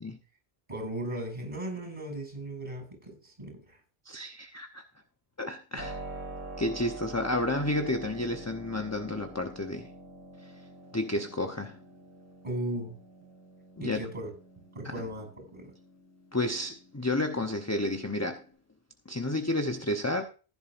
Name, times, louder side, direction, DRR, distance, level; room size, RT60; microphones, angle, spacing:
voice 1, 0.7-3.8 12.4-13.0 13.8-14.3 14.7-15.7, right 1 dB, 30° right, 7.4 m, -37 dB
voice 2, 4.0-4.8 5.4-6.0 6.6-9.9 10.4-10.5 10.9-11.8 13.8-14.0 14.9-15.0 16.3-18.4 19.1-20.2, left 1 dB, 15° left, 0.9 m, -31 dB
Keyboard (musical), 5.8-18.5, right 2 dB, 10° right, 5.0 m, -46 dB
15.5 x 10.5 x 2.6 m
omnidirectional pair, 1.0 m